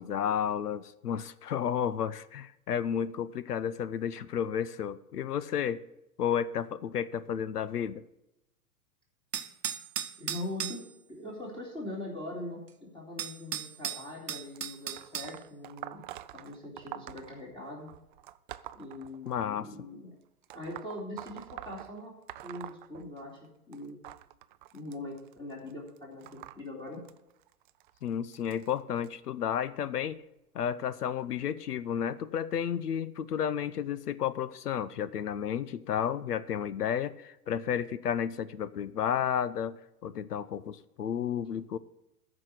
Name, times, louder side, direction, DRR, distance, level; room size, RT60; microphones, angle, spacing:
voice 1, 0.0-5.8 6.2-8.0 19.2-19.7 28.0-30.2 30.5-41.8, left 8 dB, 80° left, 17 dB, 0.8 m, -32 dB
sound 1, 9.3-10.8 12.7-12.8 13.2-15.3, right 9 dB, 85° right, 1.0 m, -36 dB
voice 2, 10.2-10.8 11.1-16.0 16.3-17.9 18.7-20.1 20.5-22.1 22.4-23.3 23.7-24.0 24.7-27.0, left 1 dB, 10° left, -3 dB, 2.8 m, -41 dB
sound 2, 14.5-19.7 20.4-23.5 23.7-29.1 29.9-30.1 31.2-31.3 32.2-32.3 33.0-33.1, right 13 dB, 35° right, 0.4 m, -47 dB
14.0 x 5.0 x 7.8 m, 0.89 s
hypercardioid pair, 110°, 46 cm